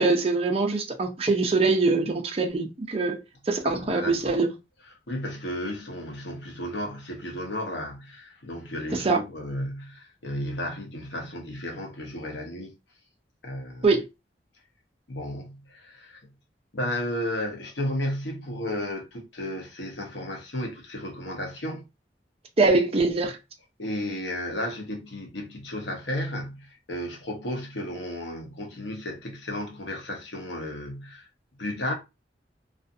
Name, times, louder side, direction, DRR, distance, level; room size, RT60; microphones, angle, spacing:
voice 1, 0.0-3.2 3.5-4.5 8.9-9.2 13.8-14.0 22.6-23.4, right 3 dB, 35° right, 0.6 m, -23 dB
voice 2, 3.6-4.4 5.1-12.7 13.4-13.9 15.1-16.2 16.7-21.8 23.8-31.3 31.6-31.9, left 1 dB, 80° left, 0.9 m, -33 dB
2.5 x 2.4 x 2.5 m
head